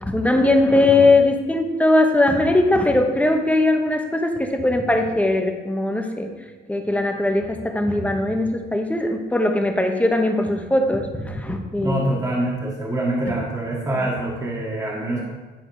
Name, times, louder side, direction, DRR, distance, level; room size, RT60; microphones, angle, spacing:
voice 1, 0.0-6.3 6.7-12.1, left 2 dB, 5° left, 4 dB, 1.1 m, -20 dB
voice 2, 11.8-15.2, right 1 dB, 15° right, -3 dB, 1.4 m, -25 dB
10.5 x 4.8 x 4.8 m, 1.3 s
cardioid pair, 90°, 20 cm